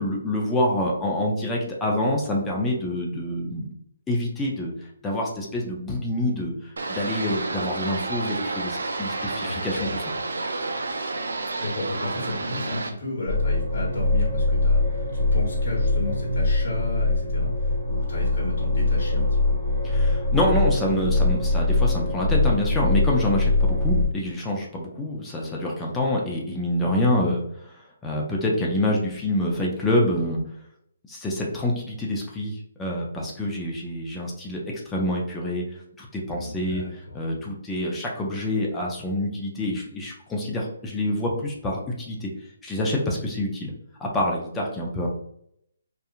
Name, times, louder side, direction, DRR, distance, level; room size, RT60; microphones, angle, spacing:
voice 1, 0.0-3.7 4.1-4.7 5.0-10.1 19.8-30.4 31.1-35.6 36.0-42.3 42.6-43.7 44.0-45.1, left 1 dB, 10° left, -2 dB, 0.5 m, -26 dB
sound 1, 6.8-12.9, right 3 dB, 80° right, 0.4 m, -30 dB
voice 2, 9.4-10.0 11.6-19.6 36.3-37.1, left 2 dB, 55° left, -4 dB, 1.0 m, -33 dB
sound 2, 13.3-24.1, left 2 dB, 55° right, 1.0 m, -23 dB
2.7 x 2.3 x 2.4 m, 0.72 s
hypercardioid pair, 155°, 0 cm